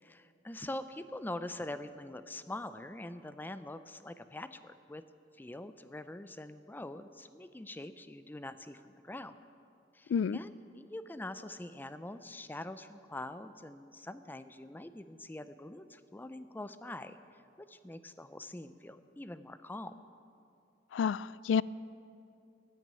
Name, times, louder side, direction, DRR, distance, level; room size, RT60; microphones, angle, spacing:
voice 1, 0.0-5.0 5.3-9.4 9.9-19.9, left 1 dB, 10° left, 12 dB, 0.4 m, -44 dB
voice 2, 20.9-21.6, left 6 dB, 85° left, 20 dB, 0.3 m, -29 dB
13.5 x 9.3 x 8.9 m, 2.6 s
head